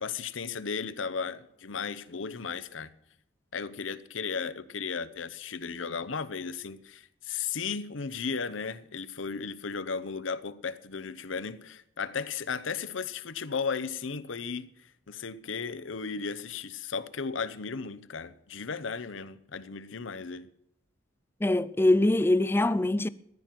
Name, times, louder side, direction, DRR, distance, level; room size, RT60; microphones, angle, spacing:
voice 1, 0.0-2.9 3.5-20.5, left 5 dB, 70° left, 0.8 m, -35 dB
voice 2, 21.4-23.1, left 1 dB, 10° left, 0.4 m, -23 dB
15.0 x 11.0 x 5.9 m
head